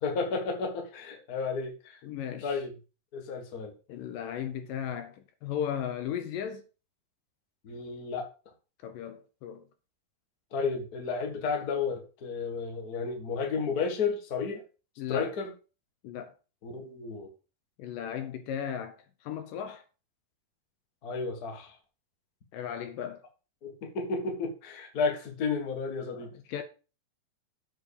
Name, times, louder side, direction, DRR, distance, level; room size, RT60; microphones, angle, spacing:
voice 1, 0.0-2.0 2.4-2.7 3.1-3.7 7.6-8.3 10.5-14.6 15.1-15.5 16.6-17.3 21.0-21.7 23.6-26.3, left 5 dB, 40° left, 1.4 m, -32 dB
voice 2, 2.0-2.6 3.9-6.7 8.8-9.6 15.0-15.3 16.0-16.3 17.8-19.8 22.5-23.2 26.1-26.6, left 9 dB, 75° left, 2.3 m, -36 dB
7.8 x 4.9 x 6.6 m
omnidirectional pair, 4.2 m